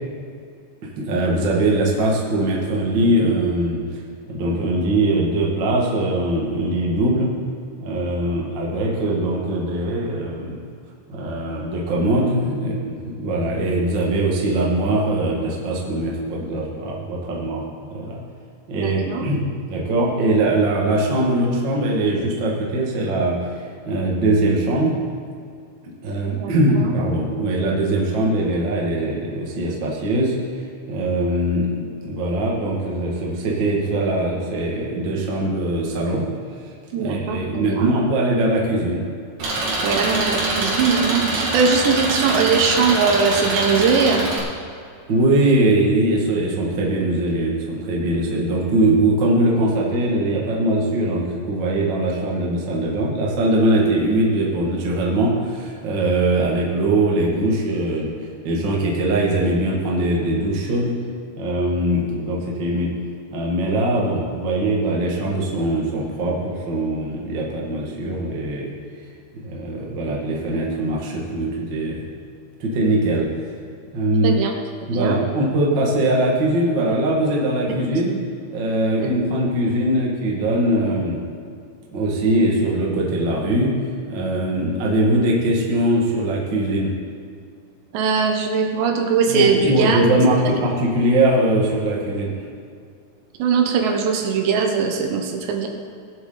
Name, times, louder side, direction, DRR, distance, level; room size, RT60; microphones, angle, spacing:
voice 1, 0.8-3.8 4.3-7.3 7.8-10.6 11.1-17.6 17.9-18.2 18.7-19.4 19.7-23.4 23.8-24.9 26.0-30.3 30.9-36.3 36.9-39.0 45.1-58.1 58.4-60.9 61.3-62.9 63.3-68.7 69.3-72.0 72.6-73.3 73.9-74.4 74.9-78.1 78.5-81.2 81.9-83.7 84.1-86.9 89.3-92.3, right 1 dB, 85° right, -3 dB, 1.0 m, -21 dB
voice 2, 18.7-19.3 26.3-26.9 36.9-37.9 39.8-44.3 74.2-75.2 79.0-79.1 84.5-84.6 87.9-90.0 93.4-95.7, right 5 dB, 70° right, 3 dB, 3.0 m, -21 dB
Engine, 39.4-44.4, right 2 dB, 50° right, 2.0 m, -24 dB
20.0 x 8.0 x 3.9 m, 2.3 s
omnidirectional pair, 5.6 m